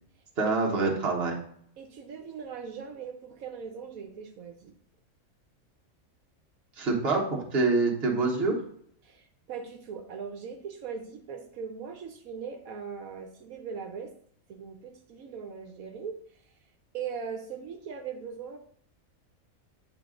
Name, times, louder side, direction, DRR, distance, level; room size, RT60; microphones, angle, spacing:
voice 1, 0.4-1.4 6.8-8.6, right 3 dB, 50° right, 0 dB, 1.5 m, -26 dB
voice 2, 1.8-4.7 9.0-14.1 14.5-16.2 16.9-18.6, right 6 dB, 90° right, 4 dB, 1.3 m, -40 dB
8.9 x 4.1 x 3.8 m, 0.63 s
omnidirectional pair, 1.4 m